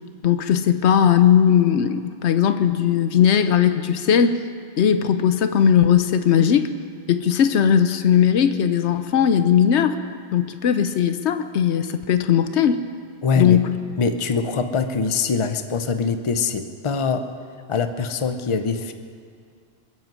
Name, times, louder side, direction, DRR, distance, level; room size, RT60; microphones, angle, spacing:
voice 1, 0.2-4.4 4.8-6.7 7.1-10.0 10.3-12.8 13.4-13.7, left 8 dB, 85° left, 10 dB, 1.0 m, -18 dB
voice 2, 13.2-13.6 14.0-17.3 17.7-18.9, left 5 dB, 30° left, 8 dB, 0.7 m, -23 dB
23.0 x 7.9 x 7.6 m, 2.3 s
omnidirectional pair, 1.1 m